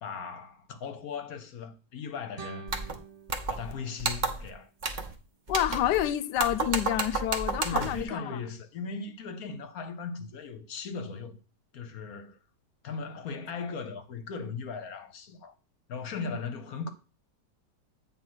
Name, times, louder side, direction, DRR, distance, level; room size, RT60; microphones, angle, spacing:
voice 1, 0.0-2.7 3.5-4.7 7.6-11.4 11.7-12.4 12.8-15.5 15.9-16.9, left 5 dB, 65° left, 1.2 m, -38 dB
sound 1, 2.3-5.4, right 7 dB, 75° right, 0.3 m, -49 dB
sound 2, 2.7-3.0 3.3-3.7 4.0-4.5 4.8-5.1 5.5-6.1 6.4-8.0, right 4 dB, 35° right, 0.8 m, -31 dB
voice 2, 5.5-8.2, left 12 dB, 85° left, 1.2 m, -28 dB
8.5 x 3.8 x 6.1 m
omnidirectional pair, 1.8 m